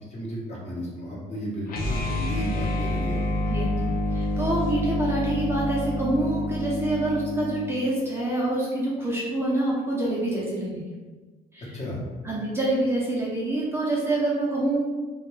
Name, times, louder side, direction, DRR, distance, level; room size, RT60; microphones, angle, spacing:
voice 1, 0.1-3.9 11.7-12.0, equal, 40° left, -5 dB, 0.9 m, -34 dB
sound 1, 1.7-7.8, left 1 dB, 60° left, 0.5 m, -28 dB
voice 2, 4.1-10.8 11.5-11.7 12.2-14.9, right 2 dB, 15° right, -5 dB, 0.5 m, -26 dB
2.2 x 2.2 x 3.1 m, 1.3 s
cardioid pair, 110°, 17 cm